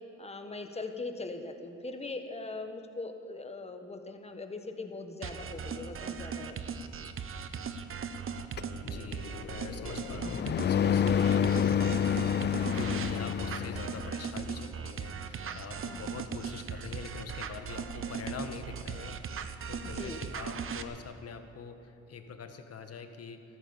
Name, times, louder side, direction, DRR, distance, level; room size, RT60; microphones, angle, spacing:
voice 1, 0.2-6.6 12.4-12.7 15.8-16.1 19.9-20.2, left 3 dB, 20° left, 6 dB, 1.5 m, -41 dB
sound 1, 5.2-20.8, right 6 dB, 45° right, 0.9 m, -38 dB
sound 2, 8.6-14.2, left 8 dB, 35° left, 0.4 m, -29 dB
voice 2, 8.8-12.0 12.7-23.4, left 5 dB, 50° left, 7 dB, 1.5 m, -44 dB
14.5 x 13.5 x 7.1 m, 2.6 s
cardioid pair, 90°, 30 cm